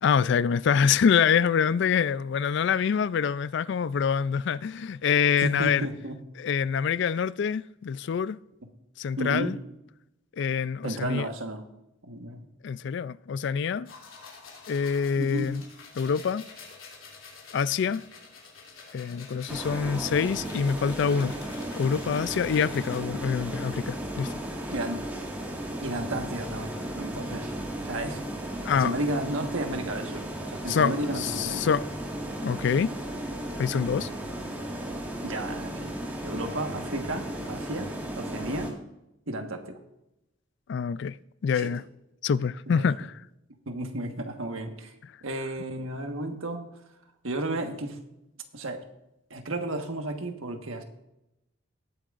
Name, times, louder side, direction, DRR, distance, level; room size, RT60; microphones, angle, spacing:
voice 1, 0.0-5.9 6.4-8.4 9.0-9.6 10.3-11.3 12.6-13.9 14.7-15.6 16.0-16.4 17.5-18.0 18.9-21.4 21.8-24.4 28.6-29.0 30.7-31.9 32.4-32.9 33.6-34.1 40.7-41.2 41.4-41.8 42.2-43.2, left 6 dB, 60° left, 0.3 m, -25 dB
voice 2, 5.4-6.2 9.2-9.6 10.8-11.6 12.0-12.5 15.2-15.5 24.7-25.0 25.8-27.5 27.8-28.2 28.7-31.7 35.2-36.0 36.2-38.7 39.3-39.8 41.5-41.7 42.7-42.9 43.7-44.9 45.2-46.7 47.2-48.0 48.5-48.8 49.3-50.8, right 1 dB, 85° right, 1.4 m, -33 dB
sound 1, 13.9-23.0, left 4 dB, 85° left, 3.0 m, -48 dB
sound 2, 19.5-38.7, right 1 dB, 10° right, 1.7 m, -35 dB
19.5 x 8.8 x 2.5 m
head